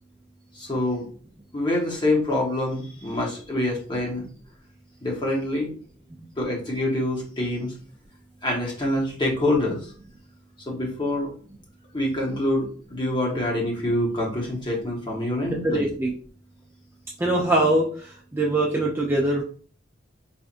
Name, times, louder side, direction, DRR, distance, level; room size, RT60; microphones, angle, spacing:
voice 1, 0.5-1.0 1.5-4.2 5.0-5.7 6.4-7.7 8.4-9.8 10.7-11.3 11.9-15.9, left 1 dB, 25° left, -2 dB, 1.1 m, -26 dB
voice 2, 15.4-16.1 17.2-19.4, right 1 dB, 10° right, -3 dB, 0.5 m, -23 dB
4.2 x 2.5 x 2.5 m, 0.41 s
head